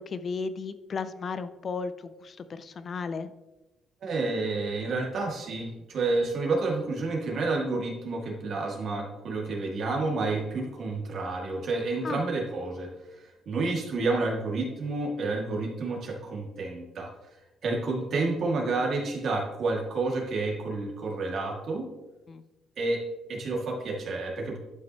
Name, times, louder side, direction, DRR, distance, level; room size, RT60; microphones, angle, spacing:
voice 1, 0.0-3.3 12.0-12.2 22.3-22.4, left 5 dB, 50° left, 12 dB, 0.5 m, -34 dB
voice 2, 4.0-12.9 13.5-17.1 17.6-21.9 22.8-23.0 23.3-24.6, right 3 dB, 65° right, 0 dB, 2.2 m, -29 dB
11.5 x 5.9 x 3.0 m, 1.0 s
cardioid pair, 90°, 0 cm